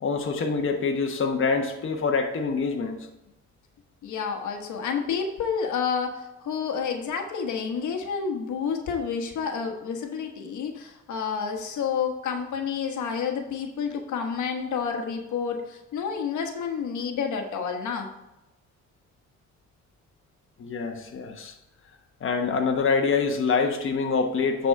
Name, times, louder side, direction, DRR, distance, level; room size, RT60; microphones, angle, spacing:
voice 1, 0.0-3.0 20.6-21.5 22.2-24.7, left 4 dB, 45° left, 3 dB, 1.2 m, -25 dB
voice 2, 4.0-18.1, left 6 dB, 75° left, 4 dB, 1.4 m, -29 dB
9.9 x 4.2 x 4.7 m, 0.96 s
cardioid pair, 90°, 30 cm